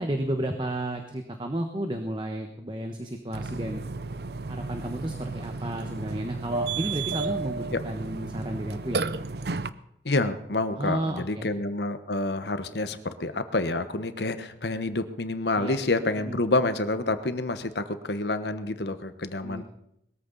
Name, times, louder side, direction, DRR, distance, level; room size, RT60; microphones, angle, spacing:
voice 1, 0.0-3.8 4.5-9.1 10.8-11.5 15.6-15.8 16.2-16.4 19.4-19.6, right 1 dB, 25° right, 5 dB, 1.1 m, -32 dB
Burping eructation, 3.3-9.7, right 4 dB, 65° right, 0.6 m, -33 dB
voice 2, 10.0-19.6, left 2 dB, 75° left, 10 dB, 1.2 m, -28 dB
21.0 x 14.0 x 4.1 m, 0.78 s
head